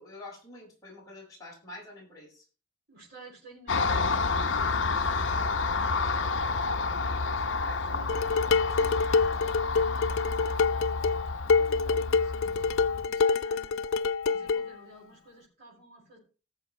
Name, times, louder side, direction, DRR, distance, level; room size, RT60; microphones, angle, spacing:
voice 1, 0.0-2.5, left 2 dB, 20° left, -4 dB, 6.0 m, -47 dB
voice 2, 2.9-16.2, right 2 dB, 55° right, -4 dB, 6.1 m, -53 dB
Car passing by, 3.7-13.1, left 4 dB, 65° left, 0.8 m, -30 dB
Dishes pots and pans, 8.1-14.7, left 4 dB, 85° left, 0.5 m, -26 dB
18.0 x 7.3 x 3.3 m, 0.36 s
head